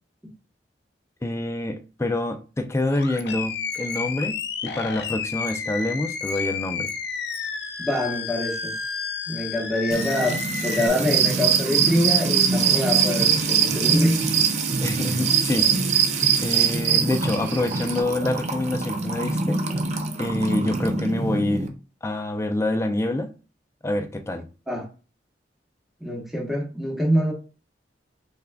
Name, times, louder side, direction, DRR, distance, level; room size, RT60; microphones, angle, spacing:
voice 1, 1.2-6.9 14.8-15.7 16.4-19.6 20.2-21.7 22.0-23.3 23.8-24.5, left 1 dB, 15° left, 0.4 m, -26 dB
Animal, 2.9-10.9, left 5 dB, 65° left, 0.6 m, -31 dB
voice 2, 7.8-8.7 9.3-14.2 24.7-24.8 26.0-27.3, equal, ahead, 1.0 m, -25 dB
Music / Water tap faucet / Trickle dribble, 9.9-21.7, right 3 dB, 40° right, 0.5 m, -27 dB
sound 1, 11.0-18.0, right 9 dB, 85° right, 0.6 m, -23 dB
3.6 x 3.3 x 2.2 m
head